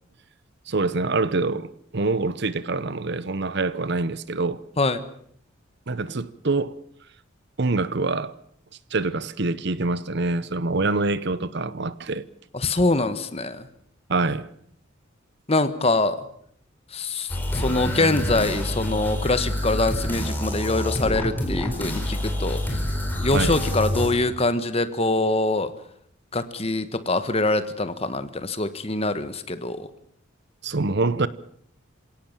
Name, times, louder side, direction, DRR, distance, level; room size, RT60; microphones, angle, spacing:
voice 1, 0.7-4.6 5.9-6.8 7.6-8.3 8.9-12.2 14.1-14.5 23.3-23.5 30.6-31.3, right 3 dB, 55° right, 0.9 m, -25 dB
voice 2, 12.5-13.7 15.5-16.2 16.9-22.8 23.2-25.7 26.3-29.9, left 2 dB, 30° left, 1.4 m, -24 dB
sound 1, 17.3-24.1, left 1 dB, 10° left, 4.5 m, -27 dB
26.5 x 17.5 x 7.3 m
head